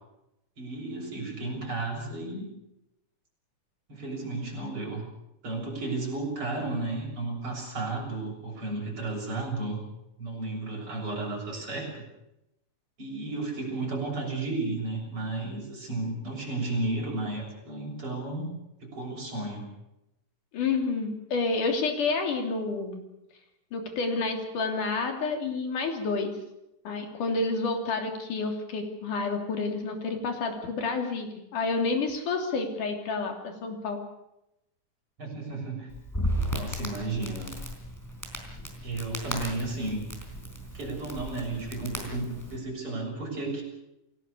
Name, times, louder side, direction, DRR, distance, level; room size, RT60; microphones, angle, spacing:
voice 1, 0.6-2.5 3.9-5.0 5.4-9.8 10.2-12.0 13.0-18.5 18.8-19.7 35.2-35.9 36.5-37.5 38.8-40.1 40.7-43.6, right 2 dB, 40° right, -1 dB, 7.8 m, -33 dB
voice 2, 20.5-23.0 23.7-26.3 26.8-34.0, left 3 dB, 75° left, 4 dB, 4.6 m, -29 dB
Crackle, 35.9-42.6, equal, 5° left, 4.1 m, -35 dB
29.0 x 17.5 x 6.8 m, 0.87 s
omnidirectional pair, 3.7 m